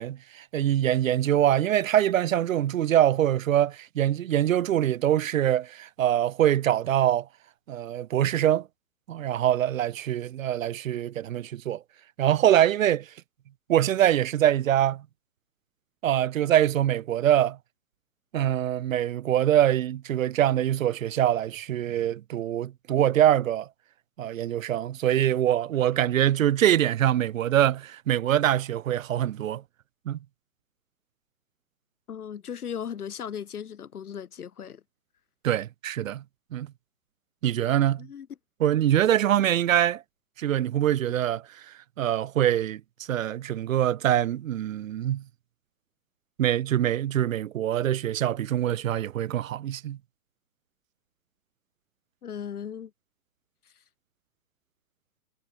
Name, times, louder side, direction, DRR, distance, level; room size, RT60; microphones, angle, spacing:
voice 1, 0.0-7.3 7.7-8.7 9.1-11.8 12.2-13.1 13.7-15.0 16.0-17.6 18.3-23.7 24.2-29.6 30.1-30.2 35.4-36.2 36.5-36.7 37.4-38.1 38.6-40.0 40.4-42.8 43.1-45.2 46.4-50.0, right 11 dB, 65° right, 1.0 m, -24 dB
voice 2, 32.1-34.8 38.0-38.3 52.2-52.9, left 8 dB, 90° left, 1.3 m, -37 dB
hypercardioid pair, 140°, 43 cm